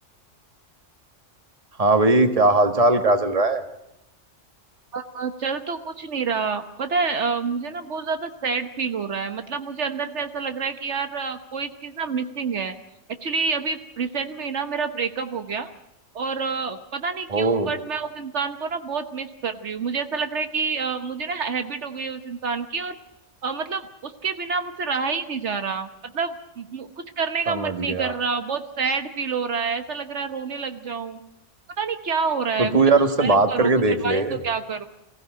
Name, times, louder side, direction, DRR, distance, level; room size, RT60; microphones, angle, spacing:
voice 1, 1.8-3.6 17.3-17.7 27.5-28.1 32.6-34.3, right 2 dB, 30° right, 8 dB, 1.7 m, -19 dB
voice 2, 4.9-12.8 13.2-15.7 16.1-23.0 23.4-25.9 26.1-31.2 31.8-32.8 33.2-34.9, right 5 dB, 70° right, 8 dB, 1.4 m, -28 dB
23.0 x 16.0 x 8.9 m, 0.86 s
omnidirectional pair, 1.2 m